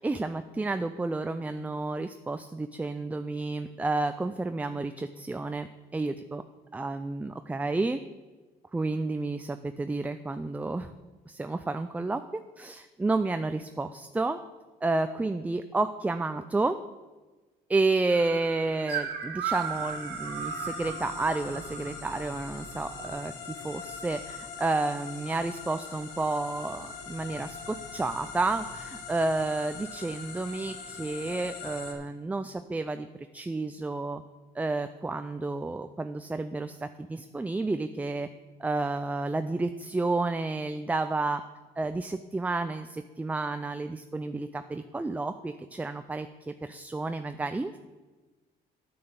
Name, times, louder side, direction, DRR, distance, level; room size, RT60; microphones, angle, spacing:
voice 1, 0.0-6.4 6.7-8.0 8.7-10.9 11.3-14.4 14.8-16.8 17.7-33.1 33.3-34.2 34.5-38.3 38.6-41.4 41.8-47.8, right 3 dB, 10° right, 9 dB, 0.3 m, -31 dB
sound 1, 18.1-23.1, right 7 dB, 80° right, 1.3 m, -36 dB
sound 2, 19.5-31.9, left 5 dB, 85° left, 1.6 m, -42 dB
9.0 x 5.9 x 7.9 m, 1.2 s
cardioid pair, 110°, 17 cm